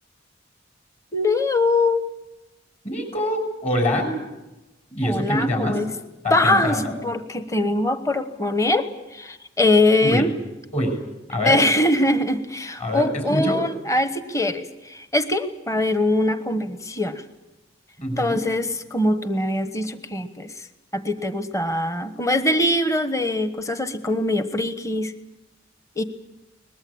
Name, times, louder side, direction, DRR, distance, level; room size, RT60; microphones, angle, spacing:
voice 1, 1.1-2.0 5.0-5.9 6.3-10.3 11.4-17.2 18.2-20.7 20.9-25.1 26.0-26.1, left 2 dB, 15° left, 9 dB, 1.2 m, -22 dB
voice 2, 2.8-4.1 4.9-5.8 6.2-6.9 10.0-10.3 10.7-11.0 11.3-11.6 12.8-13.6 18.0-18.4, equal, 35° left, 5 dB, 6.8 m, -24 dB
23.0 x 20.5 x 8.7 m, 1.0 s
head